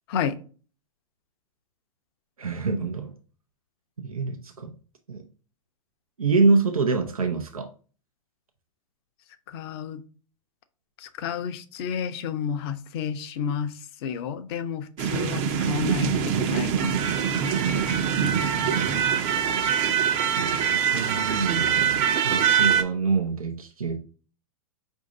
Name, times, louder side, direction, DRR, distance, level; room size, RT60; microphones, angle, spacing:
voice 1, 2.4-3.1 4.0-4.7 5.1-5.2 6.2-7.7 20.4-24.0, right 4 dB, 85° right, 0.7 m, -26 dB
voice 2, 9.5-10.0 11.0-13.7 14.0-17.0, left 7 dB, 45° left, 0.6 m, -31 dB
sound 1, 15.0-22.8, right 8 dB, 35° right, 0.6 m, -24 dB
5.0 x 2.7 x 3.8 m
figure-of-eight pair, 105°, 18 cm